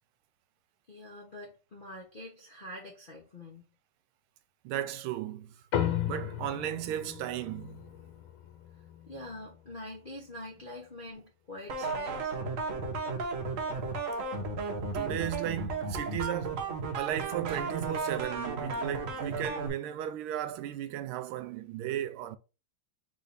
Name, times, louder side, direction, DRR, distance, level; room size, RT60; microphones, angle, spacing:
voice 1, 0.9-3.6 9.1-12.4, left 1 dB, 55° left, 0.6 m, -45 dB
voice 2, 4.6-5.6 6.0-7.9 14.9-22.4, right 11 dB, 80° right, 1.4 m, -35 dB
sound 1, 5.7-10.5, left 10 dB, 85° left, 1.6 m, -36 dB
sound 2, 11.7-19.7, right 3 dB, 55° right, 0.9 m, -34 dB
3.7 x 3.3 x 4.0 m
omnidirectional pair, 2.4 m